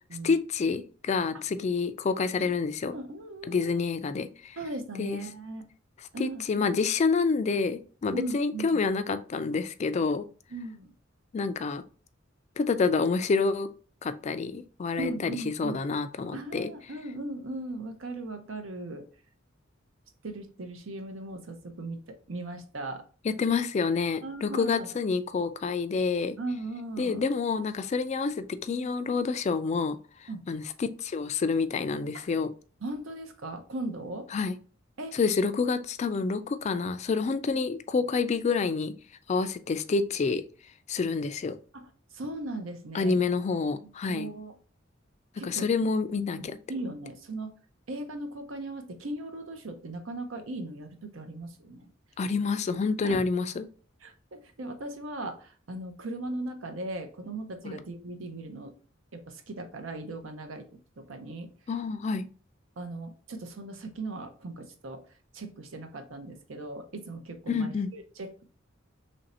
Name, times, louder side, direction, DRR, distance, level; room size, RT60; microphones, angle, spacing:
voice 1, 0.2-3.0 3.5-4.6 5.0-5.2 6.2-10.2 11.3-11.8 12.6-13.7 14.0-15.3 15.6-16.7 23.2-26.4 27.0-30.0 30.5-32.5 34.3-34.5 35.1-38.9 39.3-40.4 40.9-41.6 42.9-44.3 45.4-46.6 52.2-53.7 57.6-57.7 61.7-62.2 67.5-67.9, left 4 dB, 35° left, 11 dB, 0.3 m, -28 dB
voice 2, 2.9-4.0 4.6-5.6 6.1-6.8 8.1-8.8 10.5-10.9 15.0-15.8 16.3-19.0 20.2-23.0 24.2-24.9 26.4-27.2 30.3-30.4 32.1-32.2 32.8-34.3 35.0-35.2 37.5-37.6 41.7-43.2 44.1-44.5 45.4-45.9 46.4-47.5 47.9-51.9 53.0-53.3 54.0-58.7 59.1-60.7 61.0-61.5 62.8-65.0 65.3-68.4, right 2 dB, 80° right, 6 dB, 0.7 m, -38 dB
3.2 x 2.6 x 4.1 m, 0.39 s
head